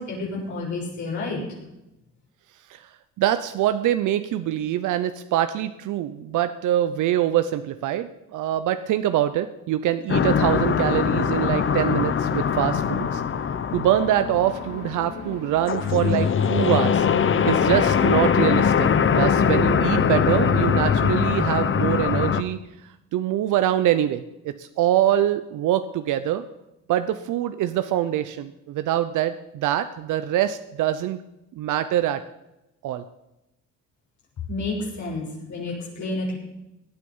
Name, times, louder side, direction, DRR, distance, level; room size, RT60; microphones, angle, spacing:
voice 1, 0.0-1.4 34.5-36.4, left 2 dB, 70° left, -5 dB, 6.2 m, -30 dB
voice 2, 3.2-13.2 13.7-17.1 17.4-18.9 19.1-22.6 23.1-26.4 26.9-31.2 31.6-32.2 32.8-33.0, right 12 dB, 80° right, 11 dB, 0.7 m, -24 dB
sound 1, 10.1-22.4, left 7 dB, 40° left, 0.9 m, -22 dB
sound 2, 14.3-20.2, right 4 dB, 65° right, 4.0 m, -41 dB
18.5 x 9.6 x 5.5 m, 0.93 s
cardioid pair, 90°, 30 cm